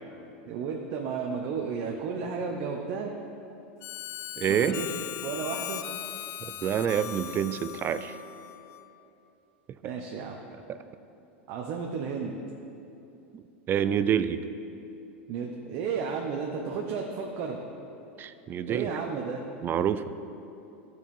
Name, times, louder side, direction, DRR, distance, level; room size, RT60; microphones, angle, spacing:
voice 1, 0.4-3.1 4.5-4.9 5.2-5.8 9.8-10.4 11.5-12.4 15.3-17.6 18.7-19.4, right 5 dB, 50° right, 1 dB, 0.9 m, -33 dB
Harmonica, 3.8-9.0, left 13 dB, 40° left, 0.3 m, -39 dB
voice 2, 4.4-4.8 6.4-8.2 10.7-10.8 13.3-14.4 18.2-18.9 19.6-20.0, right 9 dB, 30° right, 13 dB, 0.4 m, -27 dB
12.0 x 4.7 x 5.4 m, 2.8 s
hypercardioid pair, 105°, 7 cm